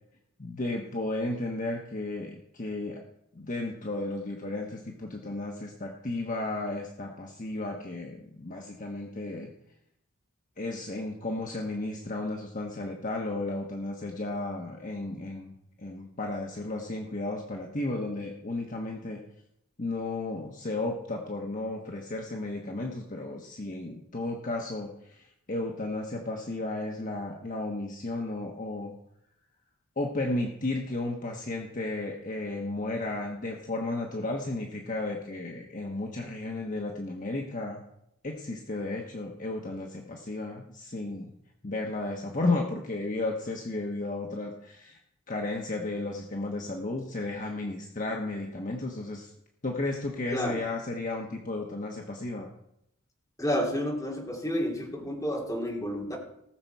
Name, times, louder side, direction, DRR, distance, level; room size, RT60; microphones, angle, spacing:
voice 1, 0.4-3.0 3.3-9.5 10.6-19.2 19.8-28.9 30.0-37.8 38.2-41.3 41.6-45.0 45.3-49.3 49.6-52.5, left 2 dB, 40° left, 0 dB, 1.2 m, -33 dB
voice 2, 53.4-56.2, equal, 15° left, -1 dB, 2.6 m, -30 dB
18.5 x 6.9 x 4.6 m, 0.79 s
head